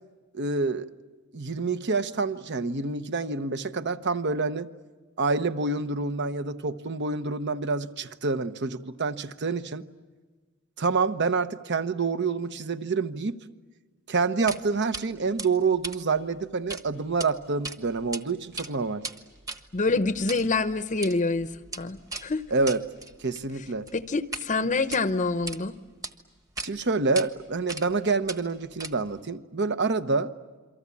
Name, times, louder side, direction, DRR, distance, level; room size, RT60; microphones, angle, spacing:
voice 1, 0.3-0.9 1.3-4.7 5.2-9.8 10.8-13.4 14.1-19.0 22.5-22.8 23.2-23.9 26.6-30.3, right 4 dB, 55° right, 1.0 m, -27 dB
sound 1, 14.5-14.6 14.9-15.0 15.4-16.8 17.1-17.3 17.6-18.2 18.5-24.5 24.8-25.6 26.0-26.1 26.6-26.7 27.1-27.3 27.7-28.0 28.3-29.2, right 3 dB, 15° right, 1.3 m, -38 dB
voice 2, 19.7-21.5 21.8-22.4 23.9-25.7, left 3 dB, 35° left, 0.8 m, -26 dB
28.5 x 24.0 x 8.5 m
head